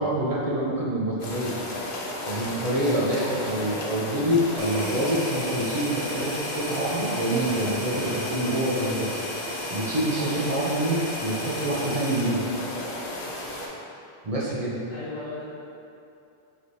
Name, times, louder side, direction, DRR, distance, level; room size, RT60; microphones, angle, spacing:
voice 1, 0.0-1.5 2.3-9.1 9.7-12.5 14.2-14.8, right 1 dB, 45° right, -5 dB, 0.5 m, -26 dB
sound 1, 1.2-13.7, left 1 dB, 65° left, 0.7 m, -34 dB
voice 2, 3.5-3.9 11.6-11.9 14.9-15.4, left 3 dB, 90° left, -9 dB, 1.3 m, -37 dB
sound 2, 4.6-12.3, equal, 25° right, 1.3 m, -36 dB
4.5 x 3.1 x 2.6 m, 2.6 s
omnidirectional pair, 1.0 m